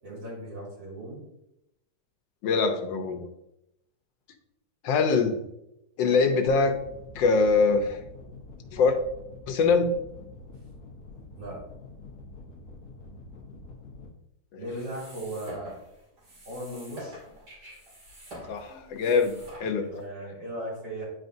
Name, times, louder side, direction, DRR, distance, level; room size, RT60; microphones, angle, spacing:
voice 1, 0.0-1.2 11.4-11.6 14.6-15.7 16.5-17.2 19.8-21.1, right 1 dB, 85° right, -5 dB, 3.7 m, -37 dB
voice 2, 2.4-3.3 4.8-5.4 6.0-6.8 7.1-8.0 8.7-9.0 9.5-9.9 14.5-14.6 18.5-19.9, left 4 dB, 85° left, 7 dB, 1.5 m, -23 dB
sound 1, 6.5-14.1, left 3 dB, 55° left, 1.3 m, -46 dB
sound 2, 14.6-20.0, equal, 60° right, 3.0 m, -46 dB
9.7 x 4.8 x 2.6 m, 0.84 s
omnidirectional pair, 2.0 m